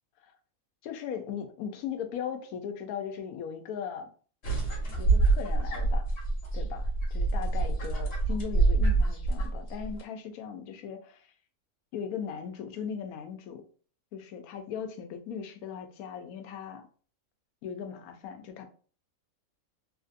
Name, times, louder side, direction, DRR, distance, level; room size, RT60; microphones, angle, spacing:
voice 1, 0.8-4.1 5.0-6.1 6.5-11.3 11.9-13.7 14.1-16.9 17.6-18.7, left 7 dB, 80° left, 1.0 m, -38 dB
sound 1, 4.4-10.0, right 3 dB, 50° left, 1.2 m, -26 dB
3.1 x 2.5 x 2.5 m
omnidirectional pair, 1.5 m